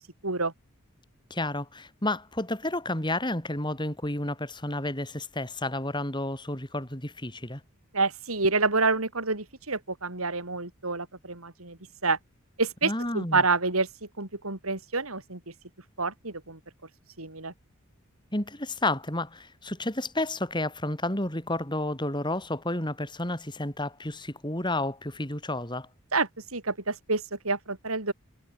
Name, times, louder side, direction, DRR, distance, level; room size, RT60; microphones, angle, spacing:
voice 1, 1.3-7.6 12.8-13.4 18.3-25.9, left 1 dB, 20° left, 5.7 m, -31 dB
voice 2, 7.9-11.8 12.0-12.2 12.6-13.9 14.2-15.4 16.0-16.6 17.2-17.5 26.1-28.1, right 3 dB, 85° right, 4.7 m, -28 dB
head